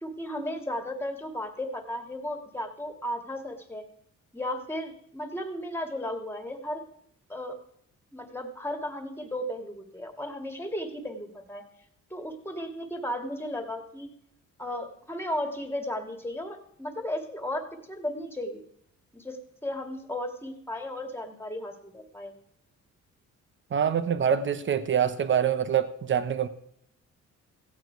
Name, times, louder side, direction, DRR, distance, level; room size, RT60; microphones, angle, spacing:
voice 1, 0.0-3.9 4.3-6.8 7.3-7.6 8.1-11.6 12.1-14.1 14.6-18.6 19.1-22.3, left 1 dB, 10° left, 5 dB, 2.2 m, -35 dB
voice 2, 23.7-26.5, right 8 dB, 40° right, 12 dB, 1.0 m, -25 dB
16.0 x 8.8 x 4.7 m, 0.70 s
cardioid pair, 90°, 30 cm